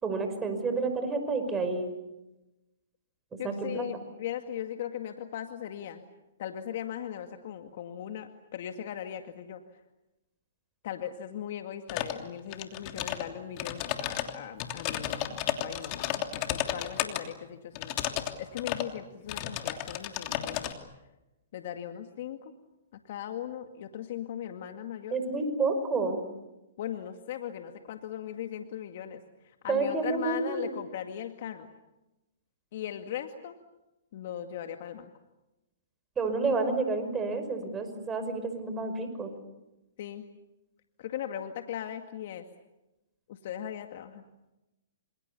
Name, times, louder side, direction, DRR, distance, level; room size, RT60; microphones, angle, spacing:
voice 1, 0.0-1.9 3.4-3.9 25.1-26.2 29.7-30.6 36.2-39.3, right 3 dB, 15° right, 7 dB, 5.6 m, -29 dB
voice 2, 3.4-6.0 6.4-9.6 10.8-18.0 18.4-20.7 21.5-22.5 22.9-25.2 26.8-31.7 32.7-33.5 34.1-35.1 40.0-40.3 41.0-42.4 43.3-44.2, left 10 dB, 55° left, 6 dB, 2.1 m, -38 dB
sound 1, 11.9-12.2 12.5-13.2 13.6-17.2 17.8-18.3 18.6-18.9 19.3-20.7, left 13 dB, 35° left, 3.0 m, -32 dB
28.0 x 27.5 x 7.1 m, 0.99 s
hypercardioid pair, 140°, 0 cm